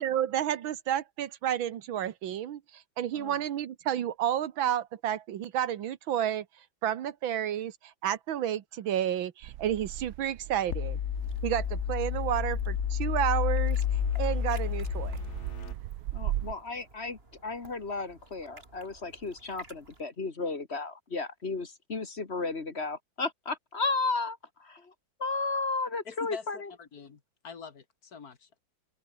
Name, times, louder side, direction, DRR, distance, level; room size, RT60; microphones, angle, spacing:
voice 1, 0.0-6.5 6.8-11.0 11.4-13.8 14.2-15.2, right 10 dB, 85° right, 1.9 m, -31 dB
sound 1, 9.4-16.5, right 14 dB, 65° right, 1.0 m, -39 dB
sound 2, 10.7-15.7, left 10 dB, 65° left, 0.7 m, -30 dB
sound 3, 11.2-20.0, right 2 dB, 30° right, 3.5 m, -55 dB
voice 2, 16.1-24.9 25.2-26.7, left 3 dB, 35° left, 1.9 m, -34 dB
voice 3, 26.1-28.6, left 6 dB, 50° left, 2.3 m, -45 dB
open air
omnidirectional pair, 2.1 m